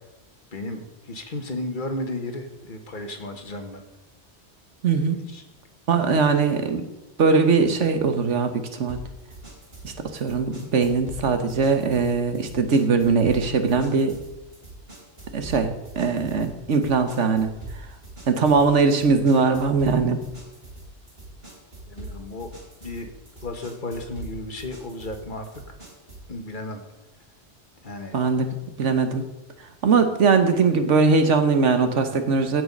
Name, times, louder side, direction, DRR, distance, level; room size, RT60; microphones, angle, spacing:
voice 1, 0.5-3.8 5.3-5.4 5.9-6.1 21.9-22.5 22.8-23.1 23.4-25.5 26.3-26.8 27.8-28.2, left 2 dB, 45° left, 5 dB, 1.5 m, -34 dB
voice 2, 4.8-5.3 5.9-6.9 7.2-9.0 9.8-14.2 15.3-17.5 18.3-20.2 28.1-29.3 29.8-32.6, right 4 dB, 90° right, 8 dB, 1.5 m, -21 dB
sound 1, 8.9-26.3, right 2 dB, 60° right, 3.5 m, -42 dB
15.5 x 6.2 x 5.3 m, 0.97 s
omnidirectional pair, 1.2 m